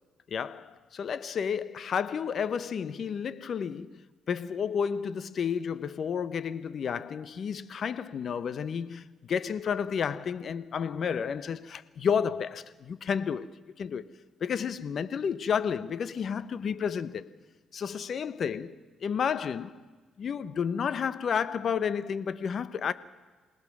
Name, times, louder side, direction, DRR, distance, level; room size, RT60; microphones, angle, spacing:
voice 1, 0.3-4.0 4.3-13.5 13.8-14.1 14.4-17.3 17.7-19.8 20.2-22.9, left 7 dB, 55° left, 0.9 m, -31 dB
27.5 x 18.5 x 6.0 m
cardioid pair, 90°, 0 cm